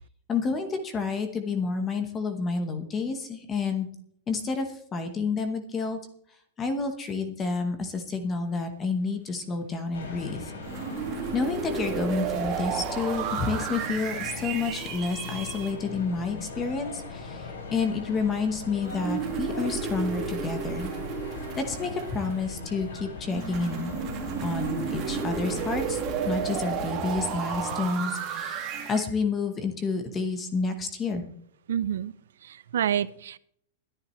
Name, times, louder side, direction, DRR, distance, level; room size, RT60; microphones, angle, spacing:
voice 1, 0.3-3.9 4.3-6.0 6.6-10.5 11.3-20.9 21.6-23.9 24.4-31.2, left 4 dB, 15° left, 7 dB, 1.0 m, -29 dB
sound 1, 9.9-25.8, left 3 dB, 85° left, 6.1 m, -40 dB
sound 2, 10.6-15.7 18.8-22.6 23.3-29.1, right 6 dB, 25° right, 1.9 m, -32 dB
sound 3, 21.1-27.9, left 5 dB, 65° left, 1.5 m, -45 dB
voice 2, 31.7-32.1 32.4-33.4, right 9 dB, 85° right, 17 dB, 0.5 m, -28 dB
21.5 x 10.0 x 3.1 m, 0.66 s
supercardioid pair, 180°, 0 cm